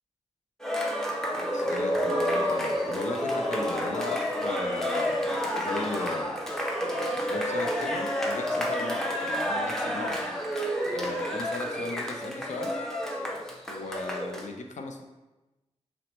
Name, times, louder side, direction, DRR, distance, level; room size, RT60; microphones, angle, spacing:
Cheering, 0.6-14.5, equal, 5° left, 0.6 m, -29 dB
voice 1, 1.5-6.4 7.3-10.2 10.9-12.8 13.7-15.0, left 3 dB, 80° left, 4 dB, 0.5 m, -36 dB
5.8 x 2.1 x 3.1 m, 1.1 s
wide cardioid pair, 90°, 12 cm